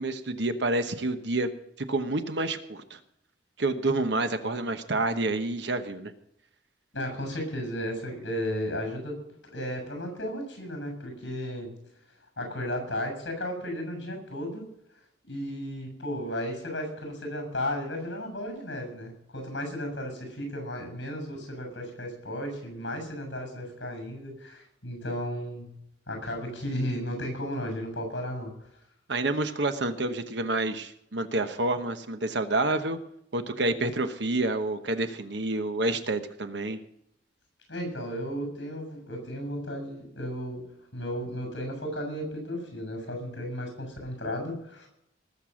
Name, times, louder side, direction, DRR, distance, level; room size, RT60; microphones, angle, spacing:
voice 1, 0.0-1.5 1.9-3.0 3.6-6.1 29.1-33.0 33.3-36.8, right 2 dB, 65° right, 8 dB, 1.1 m, -28 dB
voice 2, 6.9-9.2 9.4-11.7 12.4-14.7 15.3-28.7 37.7-40.6 40.9-44.9, equal, 70° left, 4 dB, 6.7 m, -34 dB
19.5 x 6.9 x 6.3 m, 0.75 s
head